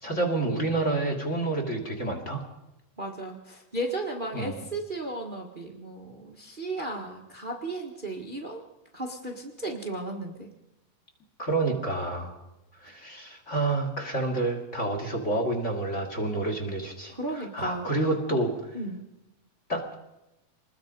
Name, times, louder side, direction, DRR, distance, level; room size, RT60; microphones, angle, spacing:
voice 1, 0.0-2.4 4.3-4.6 6.8-7.0 11.4-12.4 12.8-18.7 19.7-20.0, right 2 dB, 20° left, 3 dB, 2.7 m, -29 dB
voice 2, 3.0-8.6 8.9-10.5 17.1-17.9 18.7-19.0, right 2 dB, 50° right, 1 dB, 0.5 m, -35 dB
26.0 x 20.5 x 5.3 m, 0.95 s
omnidirectional pair, 4.1 m